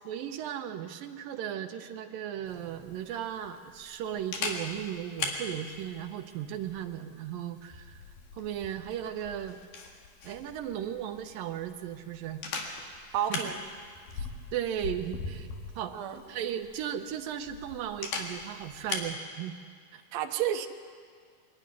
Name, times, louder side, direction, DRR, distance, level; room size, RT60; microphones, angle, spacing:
voice 1, 0.1-8.0 8.3-9.6 10.2-12.4 13.3-13.4 14.2-14.3 14.5-15.5 15.8-15.9 16.3-19.6 19.9-20.0, right 10 dB, 80° right, 6 dB, 2.5 m, -36 dB
Camera, 2.5-19.2, left 4 dB, 75° left, 3.5 m, -41 dB
voice 2, 13.1-13.6 15.9-16.2 20.1-20.7, right 10 dB, 65° right, 5 dB, 1.9 m, -30 dB
22.5 x 12.5 x 9.7 m, 2.1 s
omnidirectional pair, 4.1 m